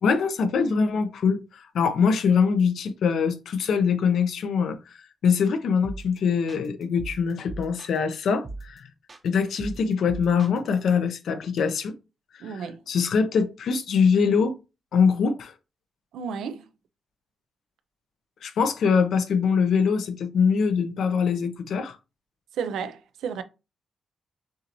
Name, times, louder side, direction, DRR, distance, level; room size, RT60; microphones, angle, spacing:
voice 1, 0.0-5.0 5.2-8.9 9.2-11.9 12.3-14.5 14.9-15.5 18.4-22.0, left 6 dB, 80° left, 0.8 m, -23 dB
sound 1, 5.8-6.2 6.5-8.1 8.4-8.8 9.1-10.9, right 2 dB, 40° right, 0.8 m, -39 dB
voice 2, 12.4-12.8 16.1-16.6 22.6-23.4, right 6 dB, 90° right, 0.5 m, -32 dB
6.3 x 2.6 x 3.0 m
cardioid pair, 65°, 0 cm